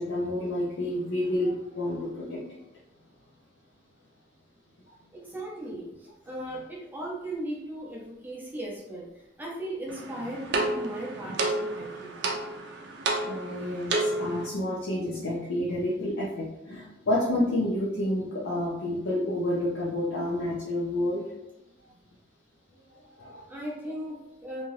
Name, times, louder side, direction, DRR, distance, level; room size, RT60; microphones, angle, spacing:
voice 1, 0.0-2.4 13.3-21.2 23.2-23.4, left 1 dB, 80° left, -6 dB, 0.6 m, -29 dB
voice 2, 5.1-9.1 9.4-12.1 23.5-24.6, right 1 dB, 10° right, -5 dB, 0.6 m, -37 dB
sound 1, 9.9-14.5, right 2 dB, 60° right, 0.4 m, -30 dB
2.7 x 2.3 x 3.1 m, 0.87 s
head